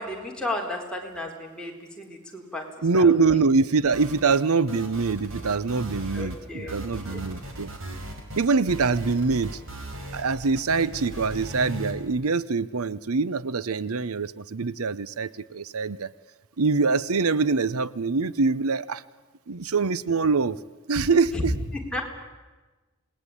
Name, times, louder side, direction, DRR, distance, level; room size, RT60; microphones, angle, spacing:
voice 1, 0.0-2.6 2.9-3.2 6.1-7.2 21.3-21.5 21.7-22.0, left 2 dB, 5° left, -1 dB, 4.3 m, -33 dB
voice 2, 2.8-7.7 8.4-9.6 10.1-16.1 16.6-19.0 19.5-20.6 20.9-21.5, right 4 dB, 90° right, 18 dB, 0.8 m, -24 dB
sound 1, 3.9-4.4 4.7-6.4 6.7-11.9, right 1 dB, 65° right, 4.8 m, -38 dB
27.0 x 20.0 x 9.9 m, 1.3 s
head